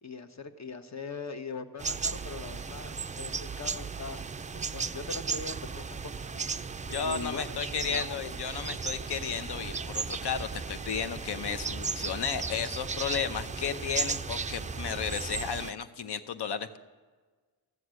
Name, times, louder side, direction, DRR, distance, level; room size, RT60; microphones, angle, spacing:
voice 1, 0.0-4.2 4.7-6.6 6.9-8.2, left 4 dB, 40° left, 9 dB, 1.0 m, -41 dB
sound 1, 1.8-15.7, right 5 dB, 20° right, 0.3 m, -36 dB
sound 2, 5.2-15.4, right 1 dB, ahead, 1.2 m, -45 dB
voice 2, 6.9-16.8, left 7 dB, 70° left, 10 dB, 0.8 m, -33 dB
13.5 x 7.9 x 6.3 m, 1.4 s
cardioid pair, 50°, 42 cm